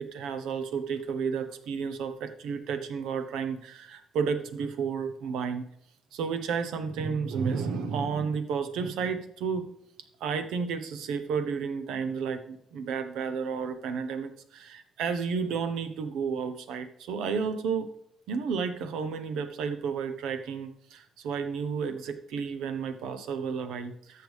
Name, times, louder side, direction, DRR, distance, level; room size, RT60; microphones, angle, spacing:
voice 1, 0.0-5.7 6.1-9.7 10.2-17.9 18.3-24.2, right 6 dB, 90° right, 9 dB, 0.9 m, -32 dB
12.5 x 6.7 x 3.5 m, 0.72 s
cardioid pair, 90°, 0 cm